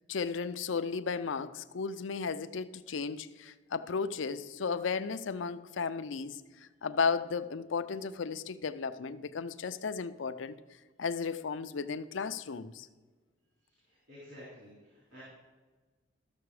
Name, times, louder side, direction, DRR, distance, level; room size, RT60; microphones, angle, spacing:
voice 1, 0.1-10.6 11.0-12.9, left 5 dB, 80° left, 0.5 m, -34 dB
voice 2, 13.9-15.2, left 1 dB, 65° right, 3.7 m, -51 dB
13.5 x 6.9 x 4.8 m
head